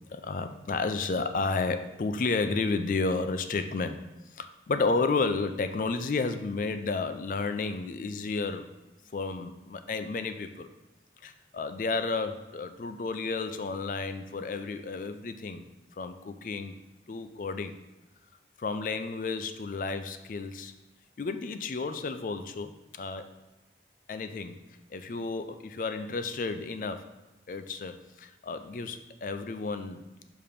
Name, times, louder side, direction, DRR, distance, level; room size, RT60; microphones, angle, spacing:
voice 1, 0.1-4.0 4.3-8.7 9.1-10.7 11.2-15.7 16.0-16.8 17.1-17.8 18.6-20.7 21.2-23.3 24.1-24.6 24.9-27.1 27.5-30.0, left 4 dB, 50° left, 9 dB, 0.4 m, -32 dB
6.7 x 2.9 x 5.1 m, 1.1 s
head